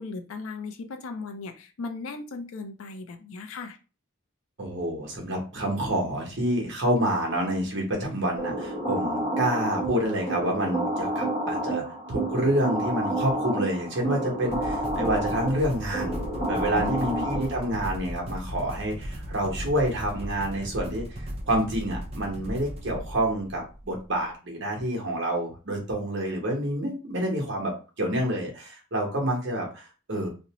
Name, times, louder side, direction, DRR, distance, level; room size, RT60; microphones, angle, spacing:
voice 1, 0.0-3.8 16.7-17.2, left 3 dB, 75° left, 7 dB, 0.4 m, -36 dB
voice 2, 4.6-16.2 16.5-21.0 21.4-30.3, right 1 dB, 55° right, 0 dB, 0.9 m, -28 dB
sound 1, 8.4-17.8, right 1 dB, 10° left, 0.9 m, -30 dB
sound 2, 14.5-24.1, equal, 30° right, 0.4 m, -37 dB
2.5 x 2.0 x 2.9 m, 0.33 s
head